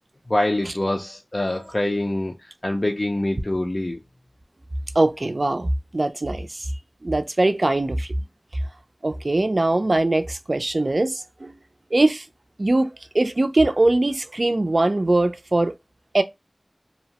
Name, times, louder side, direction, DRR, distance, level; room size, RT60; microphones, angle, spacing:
voice 1, 0.3-4.0, left 1 dB, 50° left, 0.4 m, -25 dB
voice 2, 5.0-6.7 7.0-8.1 9.0-11.6 11.9-12.3 12.6-15.7 16.1-16.2, right 2 dB, 65° right, 0.3 m, -21 dB
2.7 x 2.0 x 2.8 m
wide cardioid pair, 40°, 0 cm